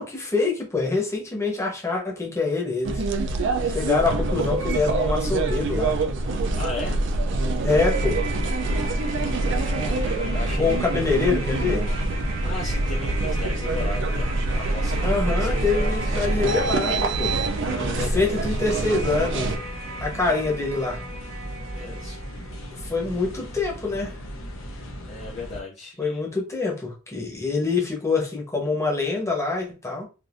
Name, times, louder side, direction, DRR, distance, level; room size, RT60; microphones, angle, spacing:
voice 1, 0.0-3.0 3.6-6.0 7.6-8.2 10.6-11.9 15.0-17.4 17.9-19.5 20.0-21.0 22.8-24.2 26.0-30.0, left 4 dB, 15° left, 0.9 m, -25 dB
sound 1, 2.8-19.6, right 2 dB, 60° right, 0.4 m, -25 dB
voice 2, 6.5-7.1 9.3-10.8 12.4-14.3 14.6-16.2 17.6-18.6 21.5-22.2 25.0-26.2, left 3 dB, 35° left, 0.5 m, -36 dB
sound 2, 7.8-22.8 23.1-23.2, right 3 dB, 75° right, 1.0 m, -38 dB
sound 3, 8.7-25.6, equal, 70° left, 0.7 m, -37 dB
3.4 x 2.6 x 2.5 m
head